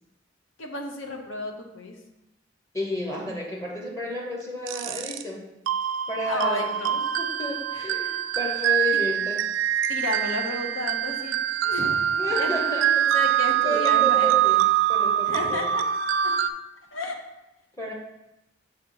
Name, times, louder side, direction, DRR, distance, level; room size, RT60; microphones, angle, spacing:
voice 1, 0.6-1.9 6.2-6.9 7.7-7.8 8.9-9.0 9.9-14.3 15.2-15.8 16.9-17.2, left 2 dB, 90° left, 2 dB, 0.8 m, -32 dB
voice 2, 2.7-5.5 6.1-9.5 12.1-15.7 17.8-17.9, left 1 dB, 15° left, -1 dB, 0.7 m, -32 dB
sound 1, 4.7-5.2 5.7-16.5, right 10 dB, 75° right, 0.3 m, -24 dB
6.6 x 2.8 x 5.4 m, 0.93 s
head